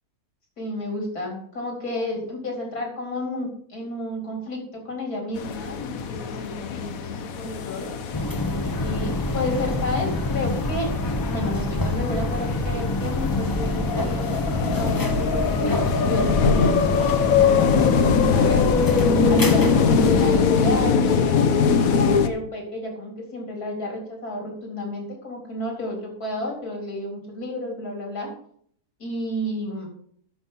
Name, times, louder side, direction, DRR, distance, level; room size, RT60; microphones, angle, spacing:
voice 1, 0.6-7.9 8.8-10.9 11.3-18.7 19.3-28.3 29.0-29.9, left 1 dB, 85° left, 0 dB, 4.3 m, -31 dB
sound 1, 5.4-22.3, left 6 dB, 70° left, 1.3 m, -22 dB
sound 2, 8.1-20.4, left 1 dB, 15° left, 0.8 m, -26 dB
12.5 x 6.1 x 5.6 m, 0.62 s
omnidirectional pair, 1.6 m